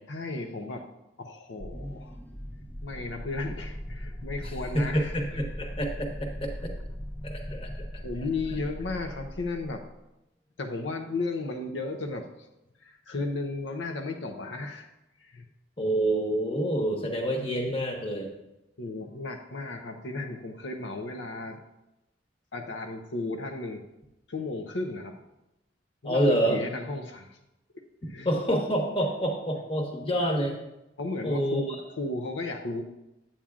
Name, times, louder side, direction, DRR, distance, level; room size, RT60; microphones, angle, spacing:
voice 1, 0.1-0.8 1.2-2.2 2.8-5.1 8.0-9.9 10.6-12.3 12.8-14.9 15.2-15.4 18.8-21.6 22.5-23.8 24.3-25.2 26.0-27.4 27.7-28.3 31.0-32.8, left 3 dB, 75° left, 4 dB, 0.6 m, -34 dB
sound 1, 1.6-9.8, equal, 10° left, 0.5 m, -39 dB
voice 2, 4.7-6.7 7.2-8.0 15.8-18.3 26.0-26.6 28.2-30.6 31.2-31.6, right 1 dB, 30° left, 2 dB, 1.2 m, -27 dB
8.7 x 8.6 x 2.4 m, 0.90 s
head